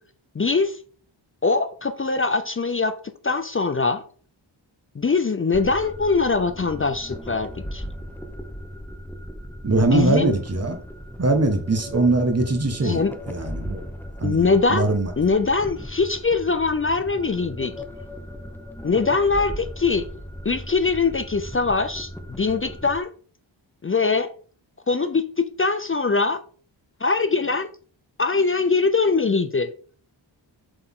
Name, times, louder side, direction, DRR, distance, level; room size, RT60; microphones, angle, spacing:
voice 1, 0.3-0.8 1.4-3.0 3.2-4.0 5.0-7.8 9.8-10.4 12.8-13.1 14.2-14.9 15.2-17.7 18.8-20.1 20.4-23.1 23.8-24.3 24.9-26.4 27.0-27.7 28.2-29.7, left 4 dB, 25° left, 0.5 m, -22 dB
sound 1, 5.5-23.0, equal, 5° left, 0.8 m, -37 dB
voice 2, 9.6-10.8 11.2-13.0 13.3-13.8 14.2-15.1, right 2 dB, 30° right, 1.4 m, -21 dB
7.8 x 4.4 x 3.7 m
wide cardioid pair, 90°, 47 cm